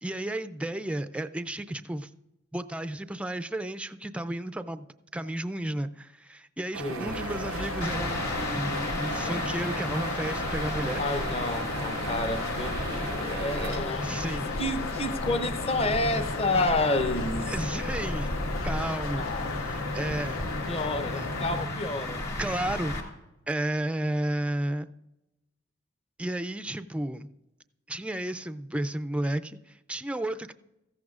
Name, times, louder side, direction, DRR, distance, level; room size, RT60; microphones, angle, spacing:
voice 1, 0.0-2.1 2.5-4.8 5.1-11.0 14.0-14.6 17.5-18.3 18.6-21.3 22.4-23.0 23.5-24.9 26.2-27.3 27.9-30.5, right 1 dB, 5° right, 0.3 m, -33 dB
sound 1, 6.7-13.8, right 7 dB, 80° right, 0.5 m, -38 dB
voice 2, 6.8-7.3 11.0-14.1 14.6-17.5 19.2-19.6 20.7-22.2, left 2 dB, 30° left, 0.7 m, -30 dB
sound 2, 7.0-21.6, left 4 dB, 75° left, 0.6 m, -36 dB
sound 3, 7.8-23.0, left 2 dB, 50° left, 2.4 m, -34 dB
17.0 x 14.5 x 2.4 m
head